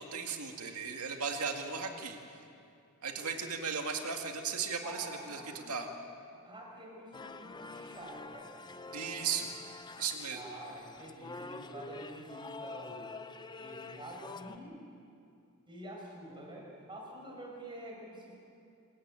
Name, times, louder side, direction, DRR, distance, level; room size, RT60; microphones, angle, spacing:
voice 1, 0.0-2.2 3.0-5.4 5.7-5.9 8.9-9.5 10.0-10.4, right 6 dB, 75° right, 3 dB, 2.1 m, -36 dB
voice 2, 4.8-5.9 6.4-8.5 10.3-13.1 13.6-14.8 15.7-18.4, right 1 dB, 20° right, -1 dB, 5.9 m, -47 dB
sound 1, 7.1-14.6, left 3 dB, 20° left, 0.6 m, -47 dB
27.0 x 14.5 x 9.0 m, 2.5 s
head